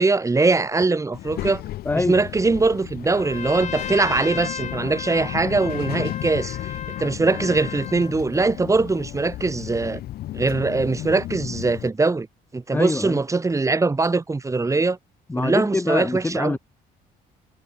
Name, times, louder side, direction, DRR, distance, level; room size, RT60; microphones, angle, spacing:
voice 1, 0.0-1.6 2.0-6.7 7.0-10.0 10.3-12.3 12.5-15.0 15.4-16.6, right 3 dB, 20° right, 3.3 m, -22 dB
Child speech kid speaking, 1.1-11.9, left 14 dB, 65° left, 1.2 m, -34 dB
voice 2, 1.9-2.2 12.7-13.2 15.3-16.6, left 3 dB, 10° left, 0.8 m, -24 dB
Trumpet, 3.1-8.1, left 8 dB, 45° left, 2.5 m, -35 dB
cardioid pair, 110°, 17 cm